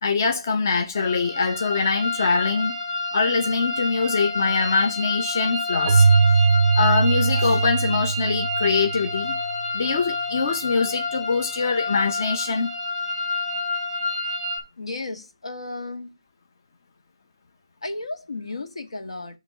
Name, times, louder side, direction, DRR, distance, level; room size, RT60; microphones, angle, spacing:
voice 1, 0.0-2.8 3.1-6.1 6.8-9.3 9.7-12.7, left 4 dB, 30° left, 0.6 m, -23 dB
sound 1, 0.9-14.6, left 3 dB, 5° left, 0.9 m, -29 dB
Keyboard (musical), 5.9-9.4, right 4 dB, 30° right, 0.4 m, -20 dB
voice 2, 14.8-16.1 17.8-19.4, left 2 dB, 75° left, 1.7 m, -34 dB
7.8 x 3.0 x 5.7 m
hypercardioid pair, 175°, 3 cm